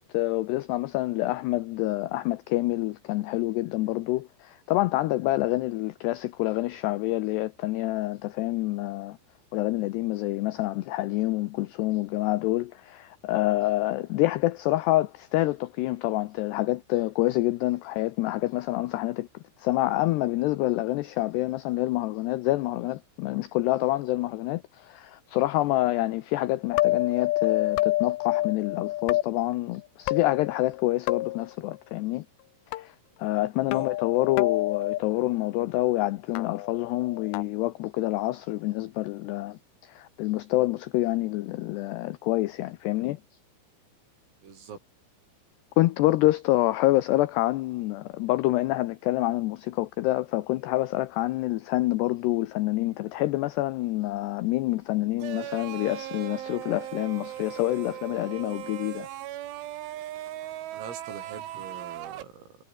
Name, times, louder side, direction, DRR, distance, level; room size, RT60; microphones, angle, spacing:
voice 1, 0.0-9.2 9.5-32.3 32.7-43.2 45.8-59.1, left 17 dB, 90° left, 2.4 m, -27 dB
sound 1, 26.7-29.2 30.1-30.8 31.1-31.5 32.7-32.8 33.7-35.0 36.4-37.4, left 17 dB, 75° left, 2.9 m, -27 dB
voice 2, 44.4-44.8 60.7-62.6, right 6 dB, 90° right, 8.9 m, -43 dB
sound 2, 55.2-62.2, right 13 dB, 75° right, 4.1 m, -38 dB
omnidirectional pair, 5.8 m